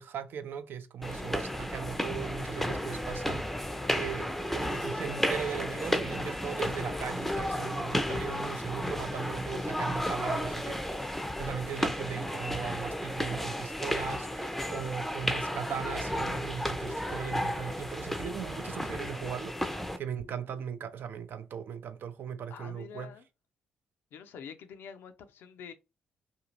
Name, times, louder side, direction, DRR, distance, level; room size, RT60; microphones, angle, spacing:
voice 1, 0.0-11.1 11.4-23.1, right 7 dB, 60° right, 0.4 m, -38 dB
sound 1, 1.0-20.0, equal, 5° left, 0.5 m, -33 dB
voice 2, 22.5-23.3 24.1-25.7, left 7 dB, 70° left, 0.4 m, -46 dB
2.6 x 2.4 x 2.9 m
hypercardioid pair, 45°, 4 cm